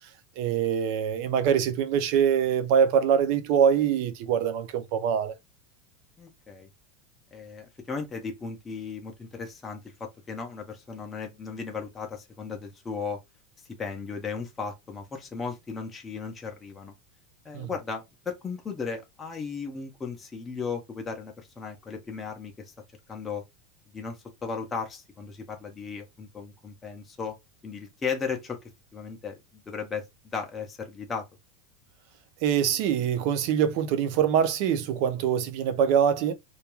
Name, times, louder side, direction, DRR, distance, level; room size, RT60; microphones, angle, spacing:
voice 1, 0.4-5.3 17.5-17.7 32.4-36.3, right 8 dB, 45° right, 0.4 m, -24 dB
voice 2, 6.2-6.7 7.3-13.2 13.8-16.9 17.4-22.5 23.1-23.4 23.9-27.4 27.6-30.0 30.3-31.2, left 5 dB, 10° left, 0.5 m, -36 dB
2.3 x 2.2 x 2.9 m
supercardioid pair, 180°, 0 cm